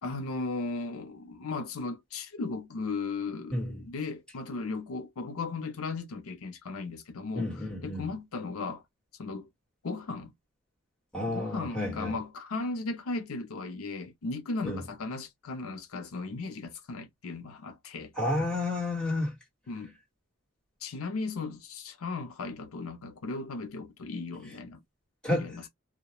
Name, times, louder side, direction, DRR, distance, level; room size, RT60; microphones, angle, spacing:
voice 1, 0.0-8.8 9.2-9.5 9.8-10.3 11.3-18.1 19.7-20.0 20.8-24.8 25.3-25.7, left 3 dB, 80° left, 0.6 m, -36 dB
voice 2, 7.3-8.1 11.1-12.1 14.6-14.8 18.2-19.3 25.2-25.5, left 1 dB, 5° left, 1.3 m, -30 dB
2.3 x 2.1 x 2.8 m
head